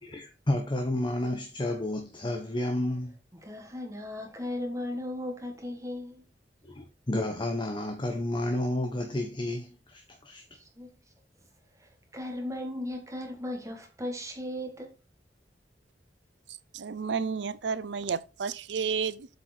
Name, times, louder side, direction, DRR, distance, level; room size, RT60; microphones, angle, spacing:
voice 1, 0.0-3.1 6.6-10.4, left 1 dB, 25° left, 1.0 m, -31 dB
voice 2, 3.4-6.2 10.6-10.9 11.8-14.9, left 1 dB, 20° right, 1.7 m, -36 dB
voice 3, 16.7-19.3, right 6 dB, 75° right, 0.6 m, -31 dB
8.0 x 4.8 x 4.3 m
head